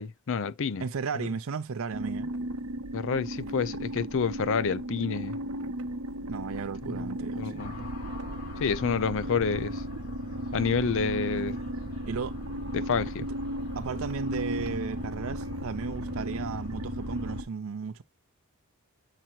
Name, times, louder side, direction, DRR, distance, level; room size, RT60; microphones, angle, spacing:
voice 1, 0.0-0.8 2.9-5.4 6.9-7.0 7.4-7.9 8.6-9.8 10.5-11.6 12.7-13.2, left 5 dB, 60° left, 0.5 m, -29 dB
voice 2, 0.8-2.3 6.3-7.7 12.1-12.4 13.2-13.3 13.8-18.0, right 5 dB, 65° right, 0.5 m, -35 dB
sound 1, 1.9-17.4, right 1 dB, 90° right, 0.8 m, -36 dB
sound 2, 7.6-17.4, left 2 dB, 45° left, 4.4 m, -41 dB
7.7 x 2.8 x 4.3 m
head